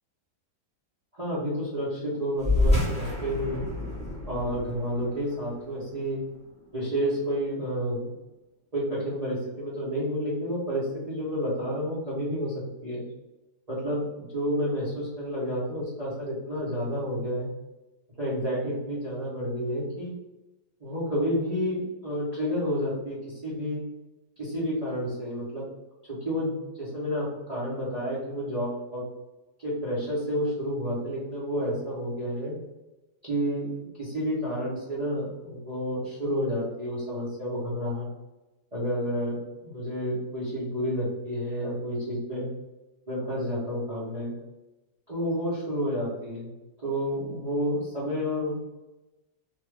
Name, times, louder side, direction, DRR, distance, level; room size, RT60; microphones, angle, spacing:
voice 1, 1.1-3.7 4.3-6.2 6.7-8.1 8.7-13.0 13.7-17.5 18.2-20.1 20.8-23.8 24.4-25.6 26.0-29.0 29.6-32.5 33.2-38.1 38.7-42.5 43.1-44.3 45.1-46.5 46.8-48.5, equal, 50° right, -8 dB, 0.4 m, -30 dB
sound 1, 2.4-7.3, left 2 dB, 5° left, 0.7 m, -29 dB
2.7 x 2.3 x 3.2 m, 1.0 s
omnidirectional pair, 1.8 m